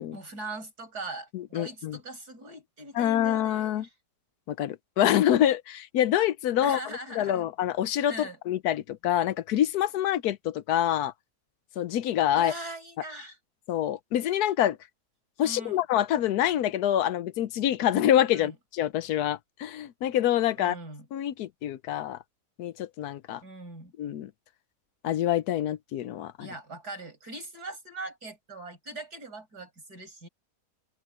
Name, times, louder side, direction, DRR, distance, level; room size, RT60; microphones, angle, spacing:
voice 1, 0.1-3.9 6.6-7.4 8.1-8.4 12.3-13.4 15.4-15.8 18.3-18.5 20.6-21.1 23.4-23.9 26.4-30.3, right 2 dB, 75° right, 6.5 m, -41 dB
voice 2, 1.3-2.0 2.9-3.9 4.5-6.8 7.1-11.1 11.8-12.5 13.7-14.8 15.4-20.8 21.1-22.2 22.6-23.4 24.0-24.3 25.0-26.5, left 11 dB, 75° left, 1.2 m, -26 dB
open air
omnidirectional pair, 1.7 m